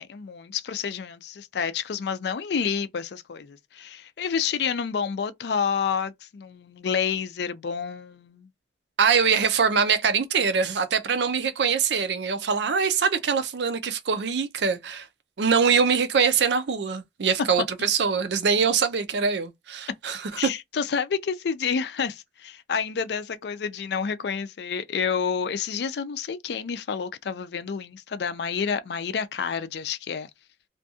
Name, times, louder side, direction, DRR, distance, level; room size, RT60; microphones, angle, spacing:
voice 1, 0.0-8.5 20.4-30.3, left 6 dB, 65° left, 0.4 m, -29 dB
voice 2, 9.0-15.1 15.4-20.5, right 6 dB, 70° right, 0.5 m, -23 dB
2.5 x 2.3 x 2.7 m
head